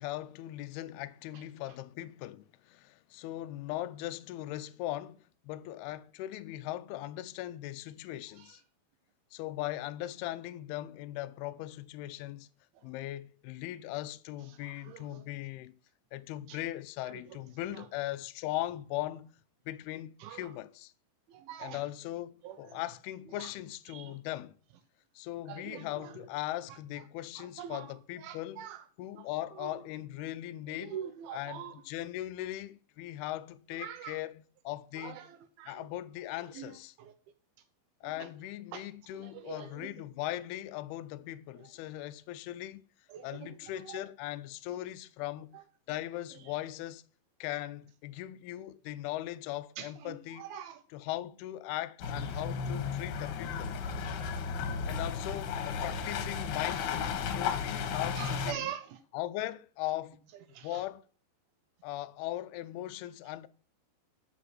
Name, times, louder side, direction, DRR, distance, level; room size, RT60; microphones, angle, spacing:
voice 1, 0.0-8.6 9.3-12.5 12.8-15.8 16.1-19.3 19.7-20.9 21.6-24.6 25.2-28.7 29.0-31.0 31.3-35.2 35.7-36.9 38.0-42.8 43.2-45.6 45.9-47.0 47.4-50.5 50.9-53.8 54.9-58.7 59.1-60.2 60.6-61.0 61.8-63.5, left 15 dB, 90° left, 2.2 m, -39 dB
voice 2, 14.5-15.2 16.5-16.6 17.0-17.4 17.6-17.9 20.2-20.6 21.3-21.8 22.4-22.8 23.4-23.5 23.9-24.2 25.5-26.2 26.7-26.8 27.4-27.9 28.2-28.8 29.2-29.8 30.8-31.8 33.8-34.2 35.0-35.9 36.4-37.1 38.0-38.3 38.7-38.9 39.1-39.9 41.6-41.7 43.1-44.0 45.5-45.6 46.3-46.5 49.8-50.8 52.3-52.4 54.2-54.8 58.2-59.0 60.5-60.8, right 10 dB, 85° right, 2.1 m, -45 dB
sound 1, 52.0-58.5, left 6 dB, 65° left, 2.8 m, -34 dB
8.2 x 8.1 x 6.1 m
omnidirectional pair, 5.3 m